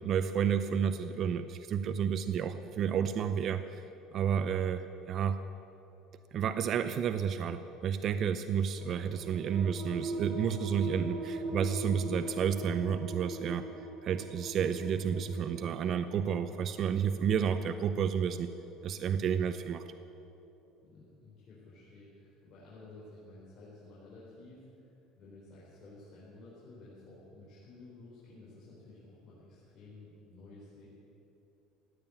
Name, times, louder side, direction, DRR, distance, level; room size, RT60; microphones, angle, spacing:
voice 1, 0.0-3.8 4.1-5.4 6.3-13.6 14.0-18.5 18.8-19.8, right 7 dB, 45° right, 10 dB, 0.6 m, -31 dB
sound 1, 8.8-20.0, right 1 dB, 70° right, 2.1 m, -42 dB
voice 2, 20.8-30.9, left 2 dB, 45° left, -7 dB, 4.4 m, -53 dB
15.5 x 9.0 x 8.9 m, 2.8 s
cardioid pair, 130°, 0 cm